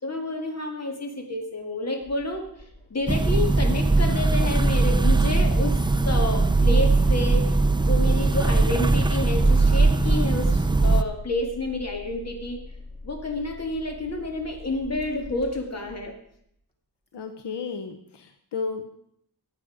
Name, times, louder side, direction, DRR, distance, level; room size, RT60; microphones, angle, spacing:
voice 1, 0.0-2.5 2.9-5.8 6.0-7.5 7.8-12.6 13.0-16.1, left 2 dB, 40° left, 2 dB, 2.2 m, -29 dB
Engine starting, 2.0-16.1, left 1 dB, 15° left, 2.4 m, -41 dB
sound 1, 3.1-11.0, right 3 dB, 10° right, 0.4 m, -20 dB
voice 2, 17.1-18.9, left 5 dB, 80° left, 7 dB, 1.0 m, -33 dB
15.0 x 8.4 x 5.0 m, 0.73 s
wide cardioid pair, 165°, 41 cm